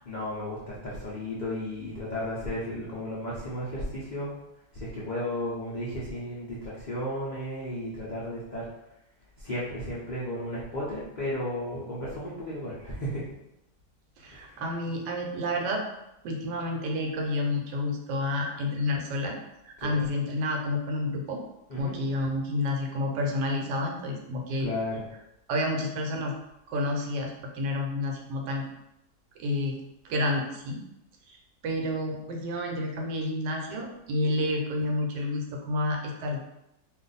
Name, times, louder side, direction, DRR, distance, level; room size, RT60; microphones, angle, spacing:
voice 1, 0.1-4.3 4.7-8.7 9.4-13.2 14.3-14.6 19.8-19.9 21.7-21.9 24.6-25.0, left 1 dB, 90° left, -8 dB, 0.4 m, -34 dB
voice 2, 14.2-15.8 16.2-19.4 19.6-21.4 21.8-24.7 25.5-26.3 26.7-28.7 29.4-29.8 30.0-30.8 31.3-36.4, left 1 dB, 80° right, 1 dB, 1.2 m, -30 dB
2.5 x 2.5 x 3.9 m, 0.88 s
omnidirectional pair, 1.8 m